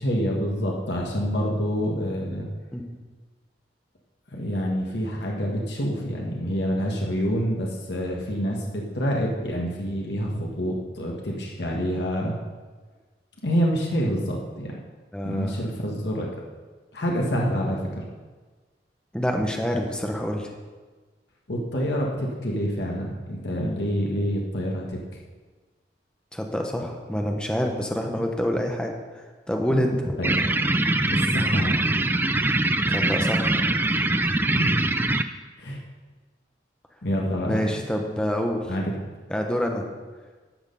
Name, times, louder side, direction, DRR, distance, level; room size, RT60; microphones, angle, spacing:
voice 1, 0.0-2.5 4.3-12.4 13.4-14.7 15.2-16.3 16.9-18.1 21.5-25.0 29.7-29.8 30.2-30.3 31.1-31.7 34.6-35.3 35.6-35.8 37.0-37.6 38.7-38.9, equal, 75° left, -2 dB, 1.6 m, -27 dB
voice 2, 15.1-15.6 19.1-20.5 26.3-29.2 29.5-30.2 32.9-33.5 37.5-38.7 39.3-39.9, equal, 5° left, 2 dB, 1.0 m, -27 dB
sound 1, 30.2-35.2, right 2 dB, 10° right, 0.3 m, -23 dB
12.0 x 6.5 x 5.4 m, 1.4 s
head